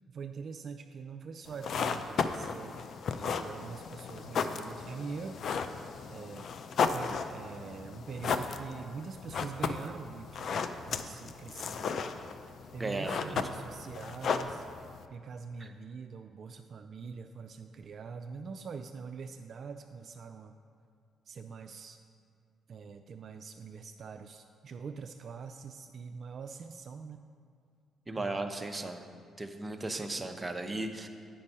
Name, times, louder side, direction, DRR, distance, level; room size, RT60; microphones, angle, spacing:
voice 1, 0.1-2.8 3.1-5.4 6.1-6.5 6.9-11.9 12.7-14.6 15.1-20.5 21.3-22.0 22.7-27.3 28.1-28.5 29.8-30.0, right 5 dB, 55° right, 6 dB, 0.3 m, -44 dB
sound 1, 1.5-15.1, left 5 dB, 60° left, 0.4 m, -35 dB
voice 2, 12.8-13.3 28.1-29.0 29.4-31.1, right 2 dB, 20° right, 5 dB, 0.7 m, -36 dB
8.6 x 5.3 x 5.4 m, 2.3 s
cardioid pair, 90°, 0 cm